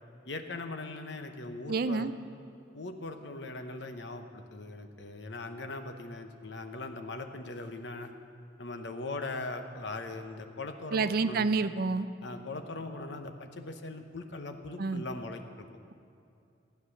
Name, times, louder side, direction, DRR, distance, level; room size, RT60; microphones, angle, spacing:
voice 1, 0.2-2.1 2.7-8.1 8.6-11.5 12.2-15.7, left 2 dB, 65° left, 6 dB, 1.0 m, -40 dB
voice 2, 1.7-2.1 10.9-12.1 14.8-15.0, right 4 dB, 50° right, 12 dB, 0.4 m, -28 dB
15.5 x 9.2 x 6.5 m, 2.6 s
head